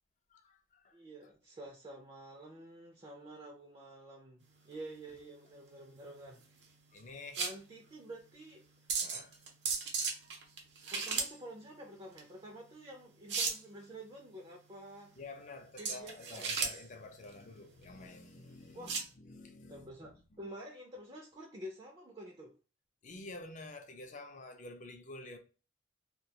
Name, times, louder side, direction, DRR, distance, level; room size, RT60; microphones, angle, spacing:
voice 1, 0.3-1.0 6.9-7.4 9.0-9.4 15.2-19.9 20.3-20.4 23.0-25.4, left 2 dB, 45° left, 0.5 m, -49 dB
voice 2, 0.9-6.4 7.4-8.6 10.9-15.1 15.8-16.5 18.7-19.0 19.7-22.5, right 1 dB, 30° right, 0.4 m, -49 dB
sound 1, 4.4-19.1, right 5 dB, 70° right, 0.6 m, -39 dB
2.3 x 2.2 x 2.7 m
head